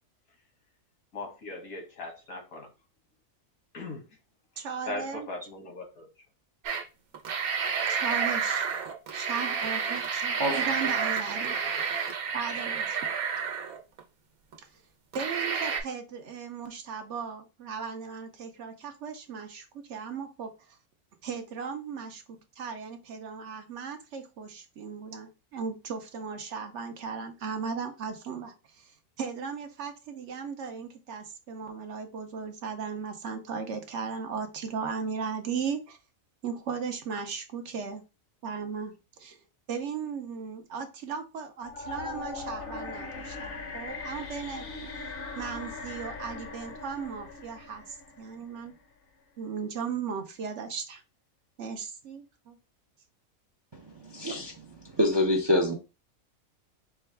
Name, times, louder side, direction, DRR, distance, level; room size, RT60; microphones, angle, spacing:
voice 1, 1.1-2.7 3.7-4.1 4.9-6.1, left 2 dB, 80° left, 1.8 m, -39 dB
voice 2, 4.6-5.3 7.9-8.7 9.1-11.5 12.3-13.1 14.7-14.8 15.1-20.8 21.2-36.0 36.4-38.0 38.4-39.4 39.7-45.1 45.3-48.7 49.4-51.0 51.6-52.6, right 6 dB, 65° right, 0.9 m, -37 dB
sound 1, 6.6-6.8 7.1-14.0 14.5-14.6 15.1-15.8, right 6 dB, 85° right, 1.2 m, -30 dB
sound 2, 41.6-48.7, left 3 dB, 50° left, 0.8 m, -40 dB
voice 3, 54.0-54.5 54.8-55.7, left 1 dB, 35° right, 0.4 m, -25 dB
4.5 x 2.3 x 3.3 m
omnidirectional pair, 1.5 m